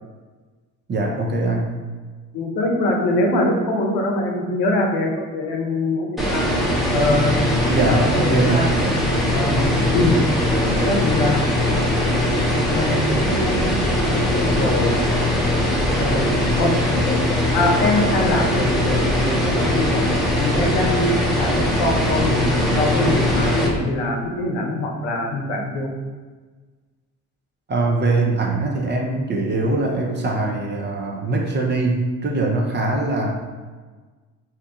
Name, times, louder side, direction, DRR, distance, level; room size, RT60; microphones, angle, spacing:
voice 1, 0.9-1.7 7.7-8.7 27.7-33.3, right 2 dB, 25° right, -1 dB, 0.7 m, -22 dB
voice 2, 2.3-6.4 6.9-7.3 7.8-8.7 9.3-10.4 10.7-11.4 12.6-14.9 16.0-16.3 16.6-16.8 17.0-20.0 20.4-22.5 22.8-25.9, left 1 dB, 65° left, 0 dB, 0.8 m, -23 dB
sound 1, 6.2-23.7, left 1 dB, ahead, 0.9 m, -20 dB
2.8 x 2.3 x 3.8 m, 1.4 s
hypercardioid pair, 60°, 42 cm